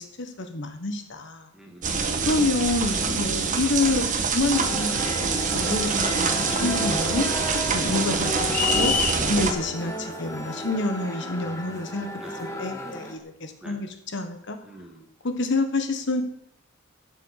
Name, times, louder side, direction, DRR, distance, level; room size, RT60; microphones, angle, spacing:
voice 1, 0.0-1.5 2.2-7.3 7.7-8.9 9.3-14.6 15.2-16.2, left 2 dB, 60° left, 7 dB, 1.3 m, -28 dB
voice 2, 1.5-2.4 6.2-6.7 8.2-8.4 12.2-12.4 13.6-13.8 14.6-15.1, right 1 dB, 5° right, 0 dB, 2.2 m, -46 dB
sound 1, 1.8-9.5, right 5 dB, 40° right, 1.3 m, -25 dB
sound 2, 4.5-13.2, equal, 15° left, 1.8 m, -33 dB
sound 3, 8.5-9.2, left 8 dB, 40° left, 0.8 m, -24 dB
11.0 x 7.9 x 6.5 m, 0.71 s
head